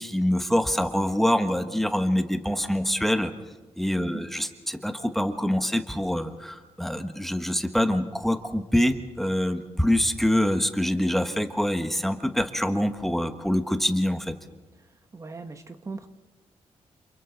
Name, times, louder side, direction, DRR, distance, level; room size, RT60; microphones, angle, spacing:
voice 1, 0.0-3.3 3.8-14.3, left 1 dB, ahead, 7 dB, 1.3 m, -25 dB
voice 2, 15.1-16.1, right 4 dB, 30° right, 8 dB, 1.1 m, -38 dB
29.5 x 28.0 x 3.9 m, 1.2 s
wide cardioid pair, 140°, 11 cm